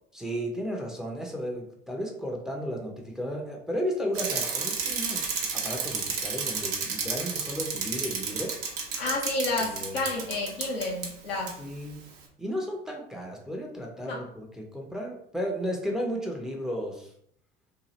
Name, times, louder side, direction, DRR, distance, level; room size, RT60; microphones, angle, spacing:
voice 1, 0.1-5.3 5.5-8.6 9.6-10.0 11.6-12.0 12.4-17.1, equal, ahead, 0 dB, 0.6 m, -34 dB
Bicycle, 4.1-11.1 11.5-11.6, right 5 dB, 65° right, 0.8 m, -31 dB
voice 2, 9.0-11.6 14.1-14.2, left 2 dB, 80° left, 0 dB, 0.8 m, -30 dB
2.9 x 2.2 x 3.0 m, 0.68 s
hypercardioid pair, 70°, 30 cm